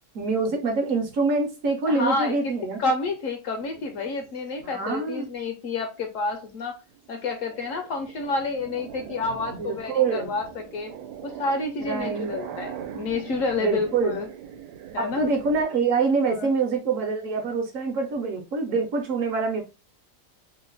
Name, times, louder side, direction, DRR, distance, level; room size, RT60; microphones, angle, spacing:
voice 1, 0.1-2.8 4.6-5.3 9.5-10.3 11.8-12.3 13.6-14.2 15.0-19.6, right 4 dB, 65° right, 1.0 m, -25 dB
voice 2, 1.9-2.4 2.8-6.8 7.1-10.9 11.2-14.3 14.9-15.3 16.3-16.5, left 3 dB, 70° left, 0.8 m, -29 dB
sound 1, 3.5-5.5 6.0-6.5 6.9-15.7, right 9 dB, 90° right, 1.2 m, -41 dB
2.9 x 2.1 x 3.9 m
omnidirectional pair, 1.7 m